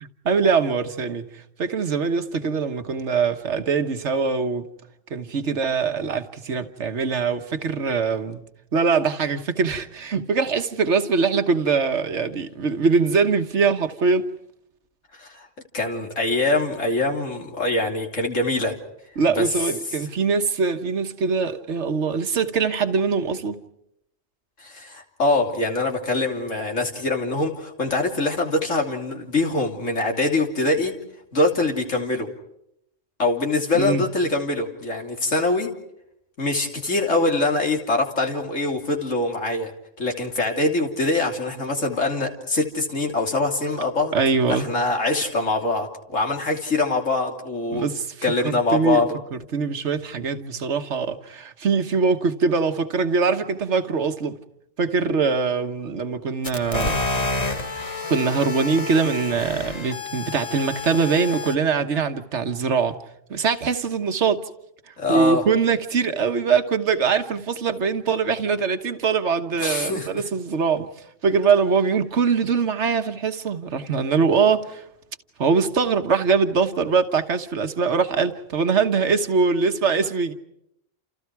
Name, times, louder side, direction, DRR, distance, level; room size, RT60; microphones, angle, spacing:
voice 1, 0.0-4.7 5.1-8.4 8.7-14.3 19.2-23.5 33.7-34.1 44.1-44.7 47.7-48.1 48.4-54.4 54.8-57.0 58.1-63.0 63.3-64.4 65.1-70.9 71.2-74.8 75.4-80.3, right 5 dB, 65° right, 1.6 m, -22 dB
voice 2, 15.7-18.7 19.3-19.4 24.6-30.9 31.3-32.3 33.2-35.7 36.4-39.7 40.0-44.1 44.5-47.9 48.2-49.2 65.0-65.4 69.6-70.1, left 2 dB, 75° left, 3.4 m, -23 dB
sound 1, 56.4-61.6, left 3 dB, 30° left, 1.5 m, -29 dB
29.0 x 29.0 x 4.7 m
omnidirectional pair, 1.3 m